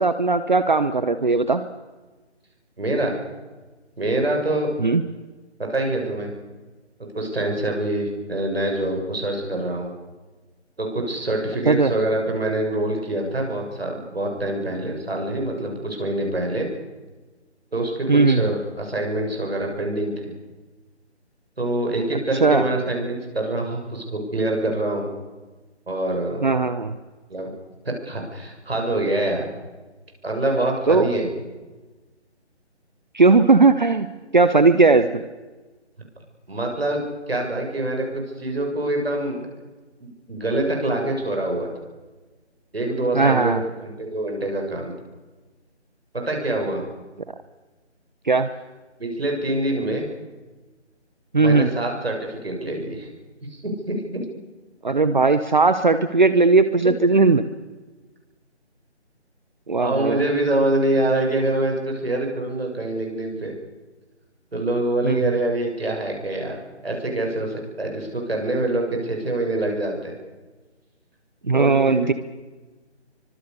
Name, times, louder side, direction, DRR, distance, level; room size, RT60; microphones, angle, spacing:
voice 1, 0.0-1.6 4.8-5.0 11.7-11.9 18.1-18.5 22.4-22.6 26.4-27.0 30.9-31.1 33.1-34.1 34.3-35.2 43.1-43.6 48.3-48.5 51.3-51.7 54.8-57.4 59.7-60.2 65.0-65.3 71.5-72.1, right 3 dB, 40° right, 12 dB, 1.0 m, -17 dB
voice 2, 2.8-3.2 4.0-4.7 5.6-6.3 7.1-9.9 10.8-16.7 17.7-20.3 21.6-25.1 25.9-26.5 27.3-27.5 28.0-29.5 30.2-31.3 36.5-39.4 40.0-41.7 42.7-44.9 46.1-46.8 49.0-50.1 51.4-53.1 53.5-54.2 59.8-63.5 64.5-66.6 66.8-70.1 71.5-72.2, right 1 dB, 60° right, 1 dB, 7.1 m, -25 dB
24.5 x 24.0 x 6.8 m, 1.3 s
figure-of-eight pair, 155°, 34 cm